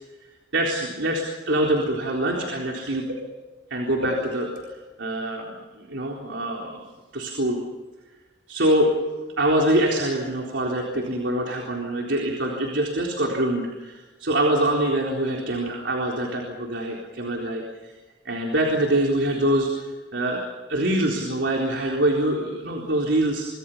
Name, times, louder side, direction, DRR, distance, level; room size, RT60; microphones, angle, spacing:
voice 1, 0.5-3.2 3.7-7.6 8.5-9.0 9.4-17.9 18.2-23.5, right 1 dB, 75° right, -1 dB, 4.0 m, -25 dB
26.0 x 25.0 x 5.7 m, 1.2 s
head